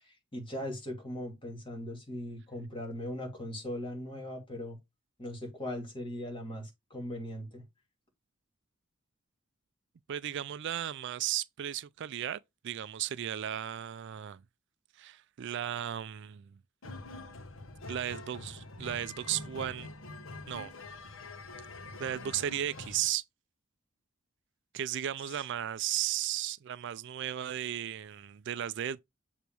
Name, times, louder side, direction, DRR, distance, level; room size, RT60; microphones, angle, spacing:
voice 1, 0.1-4.8 5.2-7.6 25.3-25.4, left 1 dB, 25° left, 2.5 m, -39 dB
voice 2, 10.1-14.4 15.0-16.5 17.9-19.9 20.5-20.7 22.0-23.2 24.7-29.0, right 11 dB, 60° right, 0.4 m, -35 dB
sound 1, 16.8-23.1, left 2 dB, 80° left, 1.1 m, -45 dB
6.9 x 2.9 x 4.6 m
head